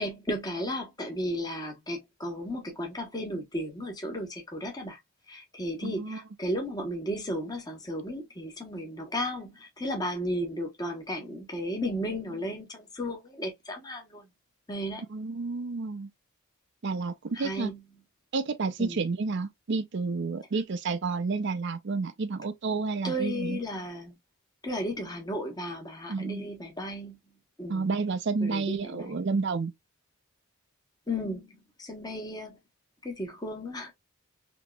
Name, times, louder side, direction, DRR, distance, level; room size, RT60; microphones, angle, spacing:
voice 1, 0.0-5.0 5.3-14.2 14.7-15.0 17.3-17.8 18.8-19.0 23.0-24.1 24.6-27.2 27.6-27.9 28.4-29.2 31.1-31.5 31.8-32.6 33.0-33.9, equal, 15° left, 1.0 m, -34 dB
voice 2, 5.8-6.2 15.1-16.1 16.8-17.7 18.3-23.6 26.1-26.5 27.7-29.7, right 4 dB, 55° right, 0.5 m, -30 dB
3.6 x 2.9 x 2.3 m
head